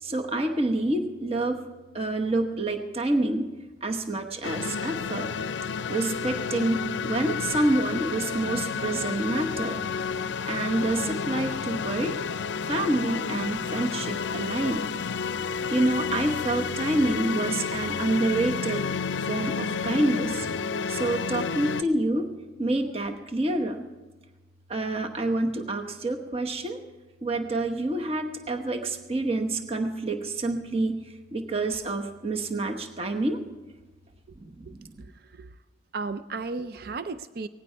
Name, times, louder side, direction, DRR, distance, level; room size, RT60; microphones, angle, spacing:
voice 1, 0.0-1.6 1.9-3.5 3.8-5.3 5.9-9.8 10.5-12.2 12.6-14.9 15.7-18.9 19.2-20.5 20.9-22.3 22.6-23.9 24.7-26.8 27.2-33.4 34.4-35.0, right 2 dB, 30° right, 4 dB, 1.0 m, -27 dB
sound 1, 4.4-21.8, left 6 dB, 70° left, 0.5 m, -31 dB
voice 2, 34.7-35.6 35.9-37.5, right 3 dB, 50° right, 12 dB, 0.5 m, -35 dB
18.5 x 15.5 x 4.5 m, 1.3 s
head